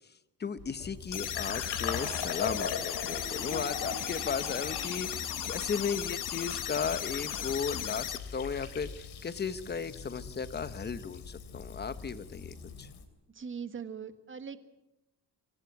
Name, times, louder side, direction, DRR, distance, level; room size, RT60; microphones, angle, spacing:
voice 1, 0.4-12.9, left 6 dB, 25° left, 13 dB, 1.0 m, -35 dB
Fill (with liquid), 0.6-13.0, left 7 dB, 75° left, 3.3 m, -40 dB
sound 1, 1.1-8.2, left 10 dB, 50° left, 1.2 m, -36 dB
voice 2, 13.3-14.6, right 6 dB, 30° right, 10 dB, 1.5 m, -40 dB
24.5 x 17.0 x 8.1 m, 0.90 s
cardioid pair, 155°, 39 cm